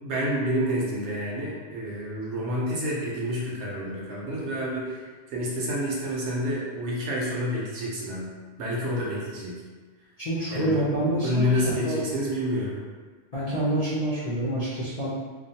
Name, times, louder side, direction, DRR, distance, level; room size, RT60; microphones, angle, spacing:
voice 1, 0.0-8.3 8.6-9.6 10.5-10.8 11.2-12.8, equal, 65° right, -4 dB, 0.9 m, -29 dB
voice 2, 10.2-12.0 13.3-15.1, right 1 dB, 50° left, -11 dB, 0.4 m, -27 dB
2.4 x 2.1 x 2.7 m, 1.4 s
omnidirectional pair, 1.3 m